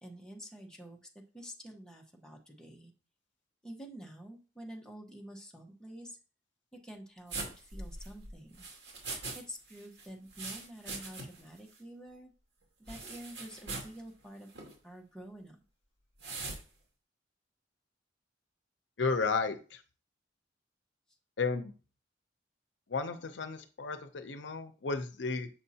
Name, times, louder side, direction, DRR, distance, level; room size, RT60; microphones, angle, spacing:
voice 1, 0.0-1.0 1.3-2.9 3.6-6.2 6.8-8.6 9.3-12.3 12.8-14.5 14.8-15.6, right 1 dB, 5° left, 0 dB, 1.0 m, -48 dB
sound 1, 7.3-9.4 9.7-11.5 11.7-11.8 12.9-14.0 14.5-14.7 16.2-16.6, right 3 dB, 70° right, 2.2 m, -41 dB
voice 2, 19.0-19.8 21.4-21.7 22.9-25.5, left 4 dB, 80° left, 9 dB, 0.7 m, -33 dB
7.4 x 5.5 x 2.8 m, 0.36 s
head